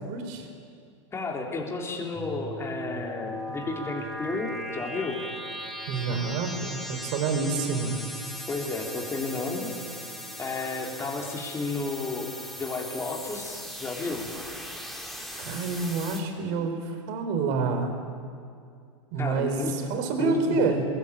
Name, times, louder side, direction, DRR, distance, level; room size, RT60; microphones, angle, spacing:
voice 1, 0.1-0.5 5.9-8.0 15.4-17.9 19.1-20.9, right 4 dB, 50° right, 6 dB, 4.5 m, -28 dB
voice 2, 1.1-5.2 8.5-9.7 10.4-12.3 12.6-14.2 19.2-19.7 20.1-20.8, left 3 dB, 15° left, 0 dB, 3.7 m, -32 dB
sound 1, 2.1-16.2, equal, ahead, 3.2 m, -38 dB
23.0 x 21.5 x 8.9 m, 2.3 s
hypercardioid pair, 120°, 16 cm